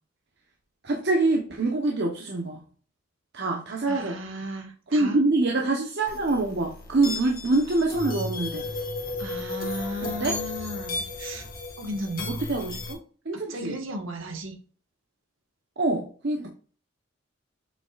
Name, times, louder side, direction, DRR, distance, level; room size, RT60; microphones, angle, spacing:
voice 1, 0.8-2.6 3.3-4.2 4.9-8.7 10.0-10.4 12.3-13.0 13.2-13.8 15.8-16.5, right 2 dB, 60° right, 1 dB, 1.0 m, -25 dB
voice 2, 3.9-5.2 9.2-11.4 11.8-12.3 13.5-14.5, equal, 80° right, 4 dB, 1.7 m, -35 dB
sound 1, 6.1-12.9, left 2 dB, 45° left, 1.7 m, -34 dB
7.6 x 5.8 x 2.5 m, 0.40 s
head